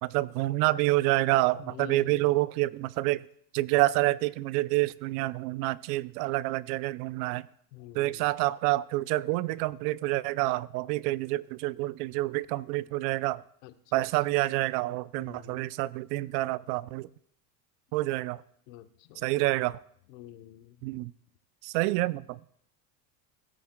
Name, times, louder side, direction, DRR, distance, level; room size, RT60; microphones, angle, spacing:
voice 1, 0.0-3.3 3.5-7.5 7.9-13.4 13.9-17.1 17.9-18.4 19.2-19.8 20.8-21.1 21.6-22.4, right 18 dB, 75° right, 20 dB, 0.5 m, -28 dB
voice 2, 1.6-2.3 7.7-8.3 13.6-14.4 15.1-15.7 18.7-19.3 20.1-20.8, left 12 dB, 75° left, 10 dB, 0.9 m, -47 dB
17.0 x 8.6 x 2.2 m, 0.65 s
supercardioid pair, 110°, 49 cm